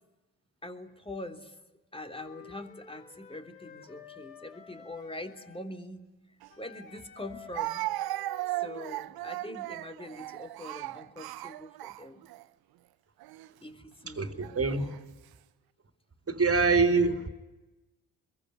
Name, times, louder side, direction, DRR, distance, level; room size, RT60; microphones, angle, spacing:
voice 1, 0.6-1.5 1.9-6.1 6.6-7.9 8.5-12.2 13.6-14.4 14.7-14.9, left 1 dB, 15° left, 6 dB, 3.3 m, -43 dB
Wind instrument woodwind instrument, 2.0-5.6 6.5-9.1, left 6 dB, 90° left, 2.4 m, -52 dB
Speech, 6.4-6.5 7.5-12.4 13.2-13.5 14.4-15.0, right 17 dB, 65° right, 1.0 m, -36 dB
voice 2, 14.1-14.8 16.3-17.3, right 4 dB, 35° right, 7 dB, 3.3 m, -25 dB
25.0 x 22.5 x 9.6 m, 1.1 s
hypercardioid pair, 45°, 40 cm